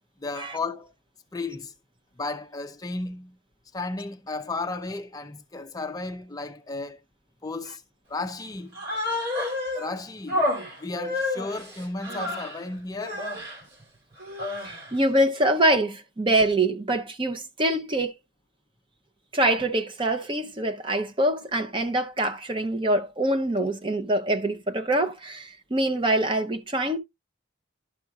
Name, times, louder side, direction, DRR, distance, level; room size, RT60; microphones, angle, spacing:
voice 1, 0.2-0.9 1.3-1.7 2.2-3.4 3.7-7.0 7.4-7.8 8.1-8.8 9.7-10.5 10.8-13.3, left 3 dB, 20° left, 0.4 m, -34 dB
Human voice, 8.7-9.9 10.3-12.6 13.0-13.6 14.2-15.0, left 2 dB, 55° right, 3.0 m, -30 dB
voice 2, 14.6-18.1 19.3-27.0, right 1 dB, 25° right, 0.6 m, -24 dB
11.5 x 6.0 x 2.4 m
head